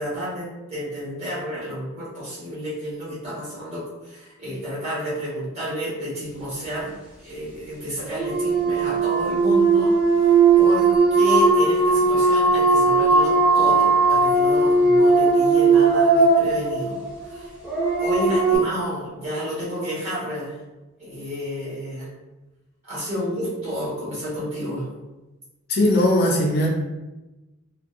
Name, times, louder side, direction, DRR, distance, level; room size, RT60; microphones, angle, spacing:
voice 1, 0.0-6.9 7.2-17.5 18.0-20.6 21.0-22.1 22.8-24.9, equal, 35° right, -9 dB, 1.3 m, -31 dB
sound 1, 8.0-18.6, right 3 dB, 5° right, 0.7 m, -18 dB
voice 2, 25.7-26.7, left 1 dB, 50° left, -2 dB, 0.4 m, -19 dB
2.6 x 2.2 x 2.5 m, 1.1 s
head